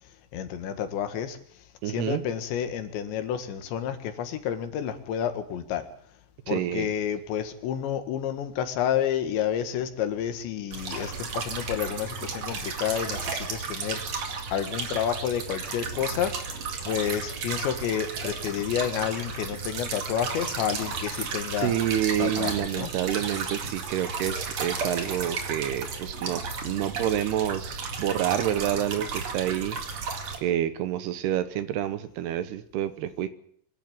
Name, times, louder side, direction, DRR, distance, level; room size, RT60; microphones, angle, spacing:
voice 1, 0.3-1.4 1.9-5.9 6.5-21.7 22.2-22.9, left 9 dB, 85° left, 8 dB, 4.0 m, -30 dB
voice 2, 1.8-2.2 6.5-6.9 21.6-30.1 30.4-33.3, right 11 dB, 75° right, 13 dB, 2.8 m, -28 dB
sound 1, 10.7-30.4, right 5 dB, 45° right, 2.8 m, -34 dB
25.0 x 12.0 x 9.0 m, 0.63 s
omnidirectional pair, 5.1 m